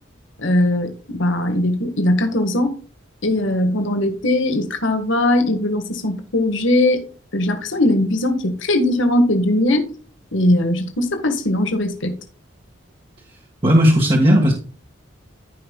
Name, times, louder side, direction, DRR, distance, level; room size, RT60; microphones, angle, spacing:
voice 1, 0.4-2.7 3.2-7.0 7.3-9.8 10.3-12.2, left 1 dB, 65° left, 1.6 m, -19 dB
voice 2, 13.6-14.5, equal, 25° right, 1.6 m, -14 dB
14.5 x 5.6 x 2.3 m
head